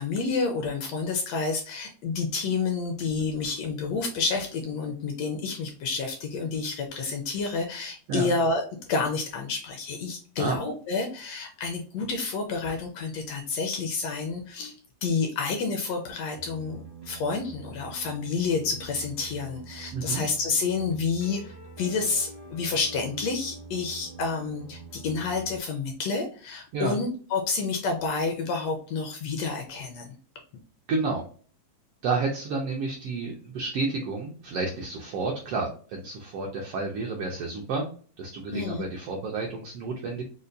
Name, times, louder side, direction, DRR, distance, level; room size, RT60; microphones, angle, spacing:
voice 1, 0.0-14.7 15.0-30.1 38.5-38.8, left 4 dB, 75° left, 3 dB, 1.6 m, -29 dB
sound 1, 16.3-25.6, right 4 dB, 55° right, 0.6 m, -45 dB
voice 2, 19.9-20.2 26.7-27.0 30.9-31.3 32.0-37.9 38.2-40.2, right 3 dB, 80° right, 0 dB, 1.3 m, -30 dB
5.2 x 2.2 x 2.5 m, 0.42 s
omnidirectional pair, 3.4 m